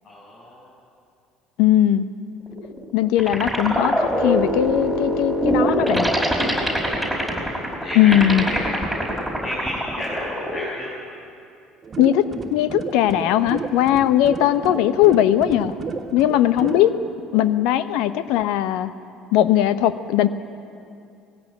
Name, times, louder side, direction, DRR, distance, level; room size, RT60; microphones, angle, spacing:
voice 1, 0.0-0.7 7.8-8.2 8.4-8.6 9.4-10.9, left 1 dB, 50° left, -6 dB, 6.7 m, -31 dB
voice 2, 1.6-2.1 2.9-6.1 7.9-8.5 12.0-15.7 16.1-16.9 17.3-18.9 19.3-20.3, left 12 dB, 70° left, 13 dB, 0.8 m, -19 dB
sound 1, 2.5-10.6, equal, 5° left, 5.2 m, -23 dB
sound 2, 11.8-16.9, right 5 dB, 35° right, 1.6 m, -32 dB
19.5 x 16.5 x 9.0 m, 2.5 s
hypercardioid pair, 65°, 0 cm